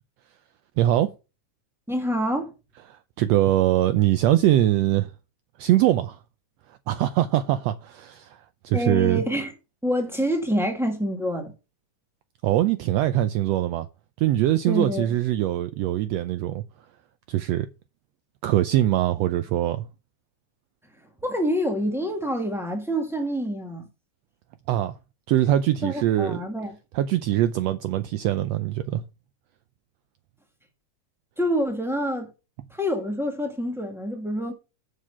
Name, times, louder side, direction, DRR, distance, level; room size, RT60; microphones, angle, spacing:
voice 1, 0.8-1.1 2.9-5.1 5.6-6.2 6.9-9.2 12.4-13.9 14.2-16.6 17.3-17.7 18.4-19.9 24.7-24.9 25.3-26.4 26.9-29.0, right 13 dB, 85° right, 1.5 m, -22 dB
voice 2, 1.9-2.5 8.7-9.5 9.8-11.5 14.7-15.2 21.2-23.9 25.8-26.7 31.4-32.3 32.7-34.5, equal, ahead, 0.7 m, -26 dB
7.5 x 6.5 x 5.7 m
omnidirectional pair, 3.6 m